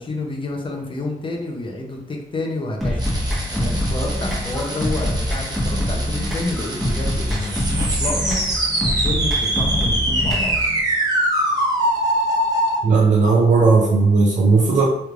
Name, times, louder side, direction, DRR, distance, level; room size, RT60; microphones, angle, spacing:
voice 1, 0.0-3.1 3.5-8.4 8.8-10.6, left 2 dB, 35° left, 1 dB, 0.7 m, -29 dB
sound 1, 2.8-10.8, equal, ahead, 1.1 m, -24 dB
sound 2, 3.0-12.8, right 1 dB, 25° right, 0.8 m, -24 dB
voice 2, 12.8-14.8, right 4 dB, 55° right, -2 dB, 0.5 m, -15 dB
3.2 x 3.1 x 2.4 m, 0.79 s
wide cardioid pair, 110°, 15 cm